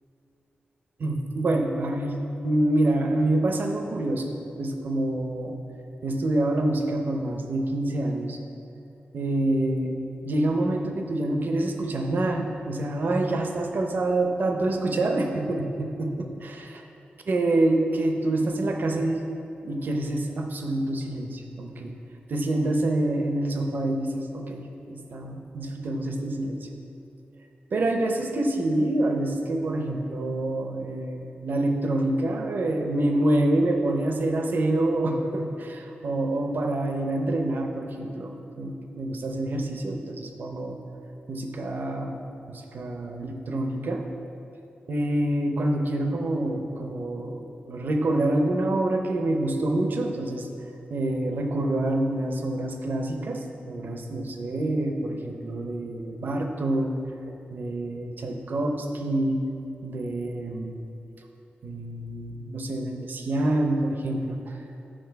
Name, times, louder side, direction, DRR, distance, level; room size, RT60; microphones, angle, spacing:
voice 1, 1.0-2.2 2.4-5.6 6.0-8.4 9.1-9.9 10.2-16.8 17.3-19.2 19.6-21.9 22.3-26.6 27.7-40.8 41.3-42.2 42.5-44.0 44.9-50.5 50.9-57.0 57.5-59.4 59.8-60.8 61.6-64.6, right 1 dB, 55° right, 3 dB, 0.8 m, -27 dB
8.9 x 6.1 x 4.6 m, 2.9 s
wide cardioid pair, 160°, 4 cm